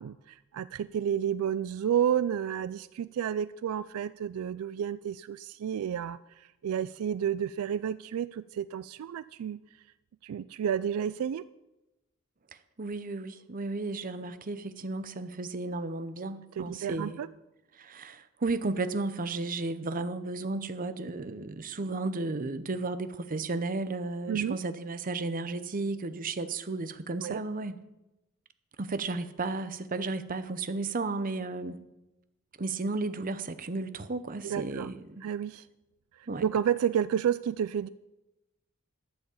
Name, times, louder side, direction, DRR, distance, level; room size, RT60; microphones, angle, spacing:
voice 1, 0.0-9.6 10.2-11.4 16.6-17.3 24.3-24.6 27.2-27.4 34.4-34.9 35.2-35.7 36.2-37.9, right 9 dB, 75° right, 16 dB, 0.3 m, -31 dB
voice 2, 12.8-17.2 17.8-27.8 28.8-31.8 32.6-35.2 36.3-36.4, right 3 dB, 40° right, 12 dB, 0.7 m, -33 dB
12.0 x 7.8 x 7.1 m, 0.99 s
head